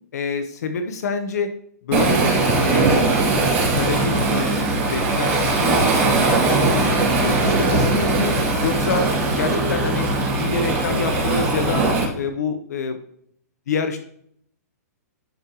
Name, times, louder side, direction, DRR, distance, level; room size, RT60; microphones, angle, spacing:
voice 1, 0.1-1.5 1.8-3.3 3.7-4.6 4.9-8.3 8.6-9.1 9.4-10.1 10.3-11.9 12.1-13.0 13.7-14.0, left 5 dB, 70° left, 7 dB, 1.0 m, -27 dB
Waves surf, 1.9-12.0, right 2 dB, 20° right, 2.4 m, -20 dB
11.5 x 5.2 x 3.1 m, 0.68 s
hypercardioid pair, 165°, 9 cm